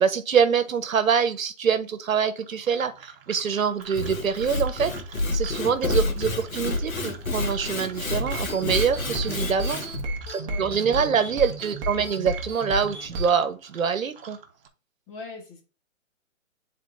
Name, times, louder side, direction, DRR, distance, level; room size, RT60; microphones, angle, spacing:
voice 1, 0.0-9.8 10.6-14.4, right 6 dB, 80° right, 1.2 m, -25 dB
sound 1, 2.3-14.7, right 7 dB, 45° right, 1.2 m, -47 dB
Sawing / Wood, 3.8-10.0, left 2 dB, 85° left, 1.7 m, -29 dB
sound 2, 8.2-13.3, right 1 dB, 20° right, 1.1 m, -33 dB
voice 2, 10.4-11.1 11.6-11.7 15.1-15.6, left 3 dB, 20° left, 1.8 m, -41 dB
9.5 x 4.2 x 2.6 m
hypercardioid pair, 155°, 40 cm